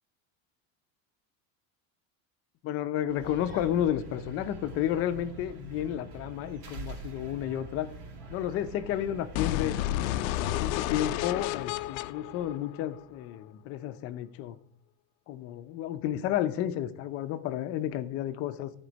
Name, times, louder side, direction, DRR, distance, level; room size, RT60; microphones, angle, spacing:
voice 1, 2.6-7.9 8.3-9.8 10.4-14.5 15.3-18.7, left 11 dB, 35° left, 12 dB, 0.6 m, -32 dB
sound 1, 3.1-11.0, right 2 dB, 80° right, 3.2 m, -44 dB
sound 2, 9.3-13.3, left 15 dB, 80° left, 0.5 m, -31 dB
13.0 x 4.4 x 5.1 m, 0.72 s
supercardioid pair, 165°, 41 cm